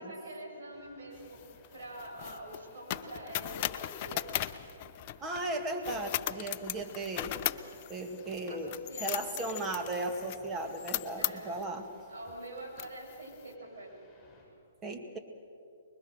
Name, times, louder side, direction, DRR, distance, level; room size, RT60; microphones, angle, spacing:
voice 1, 0.0-1.4 1.7-4.3 8.5-9.4 11.2-11.6 12.1-14.0, right 1 dB, 75° right, -1 dB, 7.4 m, -45 dB
sound 1, 0.7-14.5, left 2 dB, 10° left, 7.4 m, -61 dB
sound 2, 1.2-5.4 5.8-11.7 12.3-12.4 12.8-13.4, left 13 dB, 40° left, 0.8 m, -38 dB
voice 2, 5.2-7.3 7.9-11.9 14.8-15.2, right 2 dB, 15° right, 5 dB, 2.0 m, -36 dB
24.5 x 22.0 x 6.6 m, 2.5 s
hypercardioid pair, 145°, 0 cm